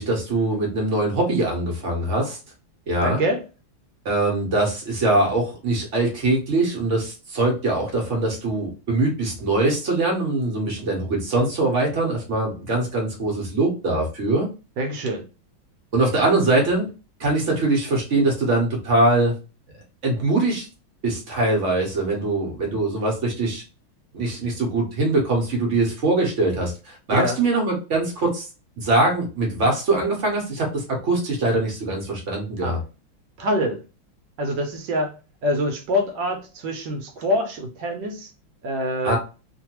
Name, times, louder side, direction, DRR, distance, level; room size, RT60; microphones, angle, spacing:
voice 1, 0.0-2.4 2.9-3.2 4.0-14.5 15.9-16.9 17.2-19.3 20.0-20.7 21.0-23.6 24.1-28.5 28.8-32.8 39.0-39.2, right 2 dB, 55° right, -1 dB, 0.9 m, -22 dB
voice 2, 3.0-3.4 14.8-15.2 27.1-27.4 32.6-32.8 33.4-33.8 34.4-35.1 35.4-38.3 38.6-39.2, equal, 75° right, 4 dB, 1.2 m, -25 dB
3.2 x 2.2 x 2.9 m, 0.32 s
omnidirectional pair, 2.2 m